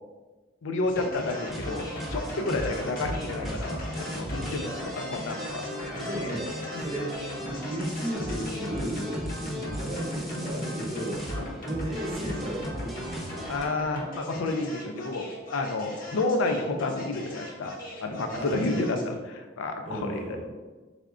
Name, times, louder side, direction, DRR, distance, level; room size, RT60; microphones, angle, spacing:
voice 1, 0.6-5.6 6.7-6.9 9.5-9.8 11.3-11.5 13.5-15.3 15.5-17.8 18.0-19.1 19.6-20.5, left 2 dB, 85° left, 5 dB, 0.4 m, -30 dB
sound 1, 0.8-19.1, left 1 dB, 45° left, 0.7 m, -39 dB
sound 2, 1.5-13.6, equal, ahead, 0.7 m, -37 dB
voice 2, 5.8-11.3 11.6-13.5 18.3-19.0 19.8-20.5, right 1 dB, 35° right, -3 dB, 0.9 m, -35 dB
3.6 x 3.4 x 2.4 m, 1.3 s
head